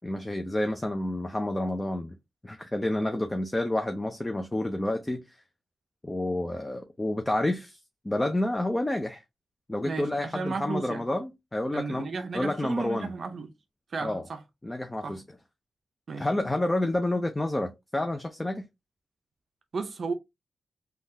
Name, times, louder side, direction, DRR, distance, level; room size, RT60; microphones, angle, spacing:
voice 1, 0.0-2.2 2.4-5.2 6.0-7.8 8.0-9.2 9.7-12.1 12.3-13.1 14.0-14.2 14.6-15.2 16.2-18.6, left 1 dB, 20° left, 0.5 m, -29 dB
voice 2, 9.9-11.1 11.7-13.5 13.9-14.4 15.0-15.2 16.1-16.3 19.7-20.1, right 4 dB, 60° right, 0.5 m, -34 dB
3.5 x 2.3 x 2.6 m
cardioid pair, 80°, 0 cm